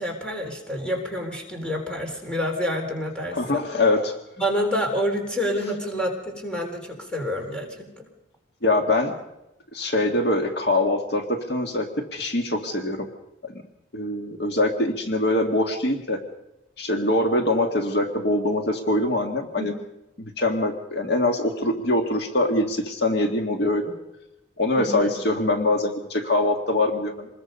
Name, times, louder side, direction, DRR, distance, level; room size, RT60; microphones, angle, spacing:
voice 1, 0.0-3.7 4.4-8.1 19.6-19.7 24.8-25.1, equal, 5° left, 2 dB, 3.8 m, -28 dB
voice 2, 3.3-4.1 8.6-9.1 9.7-13.1 13.4-13.5 13.9-16.2 16.8-19.7 20.2-23.8 24.6-27.3, left 2 dB, 60° left, 4 dB, 1.8 m, -23 dB
26.5 x 21.0 x 5.4 m, 0.90 s
head